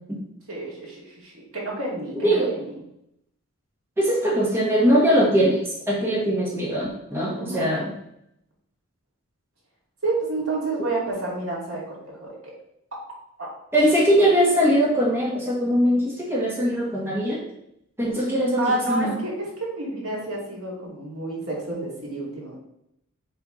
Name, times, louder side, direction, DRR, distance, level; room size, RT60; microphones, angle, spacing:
voice 1, 0.5-2.9 7.3-7.8 10.0-12.4 13.4-13.5 18.6-22.6, right 2 dB, 75° right, -4 dB, 2.5 m, -30 dB
voice 2, 4.0-7.9 13.7-17.4 18.0-18.6 18.9-19.1, equal, 10° right, -5 dB, 1.4 m, -21 dB
6.7 x 3.6 x 4.9 m, 0.77 s
head